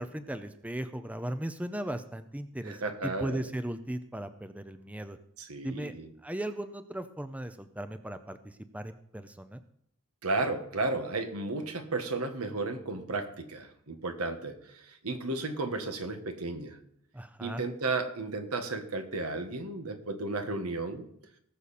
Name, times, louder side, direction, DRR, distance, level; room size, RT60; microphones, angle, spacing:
voice 1, 0.0-5.2 5.6-5.9 6.2-9.6 17.1-17.6, right 1 dB, 5° right, 10 dB, 0.6 m, -37 dB
voice 2, 2.6-3.4 5.4-6.1 10.2-16.8 17.4-21.1, right 3 dB, 90° right, 7 dB, 1.5 m, -33 dB
19.5 x 6.9 x 4.2 m, 0.71 s
head